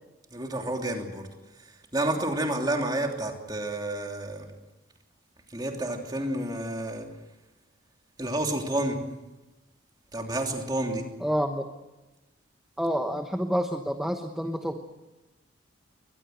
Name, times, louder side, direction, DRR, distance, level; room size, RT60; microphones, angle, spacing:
voice 1, 0.3-1.3 1.6-4.5 5.5-7.1 8.2-9.0 10.1-11.1, right 1 dB, 20° right, 2 dB, 3.0 m, -30 dB
voice 2, 11.2-11.7 12.8-14.8, equal, ahead, 4 dB, 1.0 m, -28 dB
23.0 x 20.0 x 7.9 m, 1.1 s
head